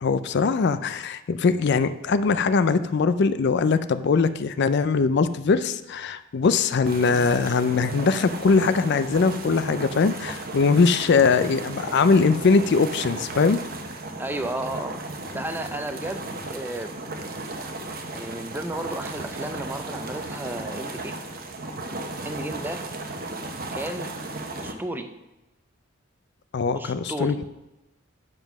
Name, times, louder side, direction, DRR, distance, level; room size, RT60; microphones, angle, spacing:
voice 1, 0.0-13.6 26.5-27.5, left 4 dB, 55° left, 12 dB, 0.4 m, -21 dB
sound 1, 6.8-24.7, right 2 dB, 45° right, 0.9 m, -35 dB
voice 2, 14.2-15.0 15.3-16.9 18.1-21.2 22.2-22.8 23.7-24.1 24.6-25.1 26.7-27.4, right 1 dB, 10° right, 7 dB, 0.6 m, -33 dB
9.4 x 5.4 x 5.9 m, 1.0 s
head